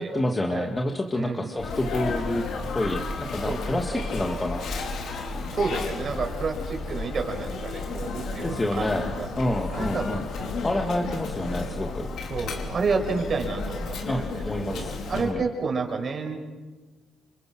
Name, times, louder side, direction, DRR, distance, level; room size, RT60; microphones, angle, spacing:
voice 1, 0.0-2.5 2.7-5.0 8.4-9.1 9.4-10.2 10.6-12.1 14.1-15.4, left 1 dB, 20° left, 3 dB, 2.2 m, -28 dB
voice 2, 1.1-1.6 3.4-4.3 5.5-10.7 12.3-14.4 14.7-16.4, right 4 dB, 45° right, 4 dB, 6.1 m, -30 dB
Sneeze, 1.6-15.3, left 3 dB, 70° left, 4.6 m, -32 dB
29.0 x 26.0 x 6.4 m, 1.3 s
cardioid pair, 90°, 0 cm